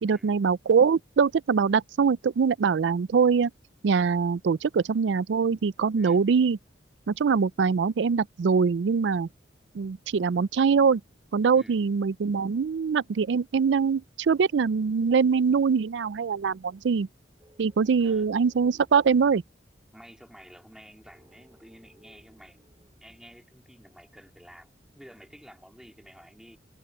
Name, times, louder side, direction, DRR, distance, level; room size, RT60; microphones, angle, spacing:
voice 1, 0.0-3.5 3.8-6.6 7.1-9.3 9.7-11.0 11.3-17.1 17.6-19.4, right 5 dB, 75° right, 0.4 m, -23 dB
sound 1, 17.4-19.5 21.0-23.4, equal, 25° right, 5.7 m, -60 dB
voice 2, 18.0-18.4 19.9-22.7 23.0-26.6, equal, 5° right, 2.9 m, -51 dB
head